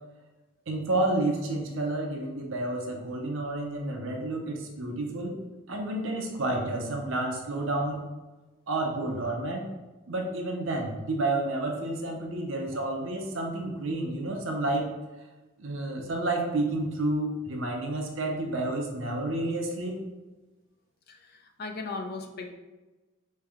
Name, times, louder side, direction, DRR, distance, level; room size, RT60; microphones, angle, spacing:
voice 1, 0.7-5.4 5.7-8.0 8.7-9.7 10.1-14.9 15.6-20.0, right 2 dB, 60° right, 1 dB, 0.6 m, -30 dB
voice 2, 21.1-22.5, left 3 dB, 45° left, 4 dB, 0.5 m, -37 dB
4.1 x 3.2 x 3.6 m, 1.2 s
head